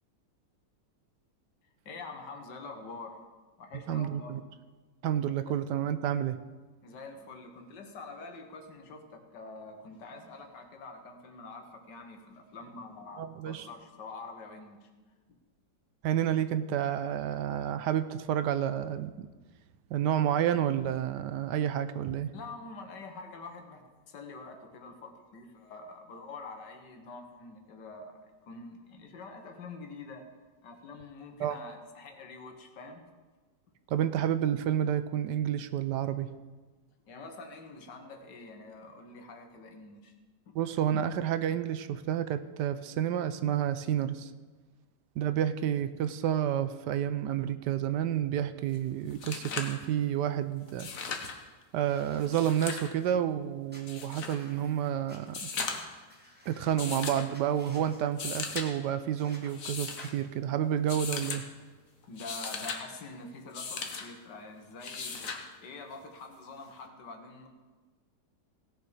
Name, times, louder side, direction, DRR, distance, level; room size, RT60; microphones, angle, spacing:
voice 1, 1.9-3.2 3.6-4.4 5.5-5.6 6.8-14.9 22.3-30.3 30.6-33.0 37.1-40.1 40.5-40.6 62.1-67.5, left 3 dB, 70° left, 4 dB, 1.9 m, -46 dB
voice 2, 3.9-4.4 5.0-6.4 13.2-13.7 16.0-19.3 19.9-22.3 31.4-31.6 33.9-36.3 40.5-44.3 45.2-50.9 51.7-55.5 56.5-61.4, right 10 dB, 75° right, 12 dB, 1.2 m, -30 dB
sound 1, 48.7-48.8 49.1-49.8 50.7-51.4 52.2-52.9 53.9-54.4 55.3-56.0 56.8-57.3 58.1-58.7 59.5-60.1 60.9-61.4 62.0-62.8 63.5-64.1 64.8-65.4 66.8-66.9, left 5 dB, 50° left, 1.4 m, -37 dB
sound 2, 51.7-53.1 53.7-55.2 55.8-55.9 56.1-56.9 57.3-58.0 59.2-59.5 60.0-60.1, equal, 5° right, 1.5 m, -55 dB
17.5 x 6.9 x 5.0 m, 1.3 s
omnidirectional pair, 1.9 m